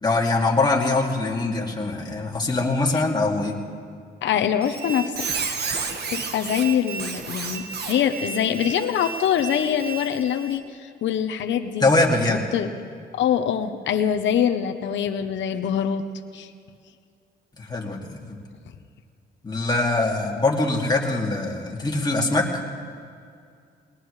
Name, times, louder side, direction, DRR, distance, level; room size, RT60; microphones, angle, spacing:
voice 1, 0.0-3.5 11.8-12.4 17.6-18.4 19.4-22.4, left 2 dB, 20° left, -1 dB, 2.5 m, -23 dB
voice 2, 4.2-5.2 6.1-11.9 12.3-12.7 13.1-16.0 16.3-16.5, left 9 dB, 70° left, 6 dB, 0.9 m, -24 dB
Squeak, 4.6-10.6, right 5 dB, 55° right, 1.5 m, -32 dB
21.0 x 19.0 x 3.3 m, 2.3 s
cardioid pair, 90°, 20 cm